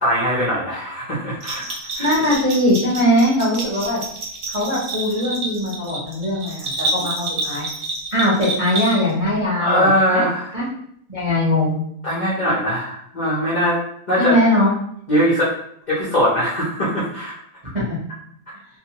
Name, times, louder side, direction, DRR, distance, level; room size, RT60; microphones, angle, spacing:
voice 1, 0.0-2.1 9.6-10.5 12.0-13.8 14.1-14.4 15.1-15.5 15.9-17.3, equal, 60° left, -7 dB, 0.4 m, -21 dB
Bell, 1.4-9.3, right 2 dB, 60° right, 0.9 m, -28 dB
voice 2, 2.0-4.0 4.5-7.7 8.1-10.3 10.5-10.7 11.1-11.8 14.2-14.7 17.7-18.0, left 1 dB, 35° right, -8 dB, 0.5 m, -20 dB
2.7 x 2.2 x 2.8 m, 0.68 s
omnidirectional pair, 1.8 m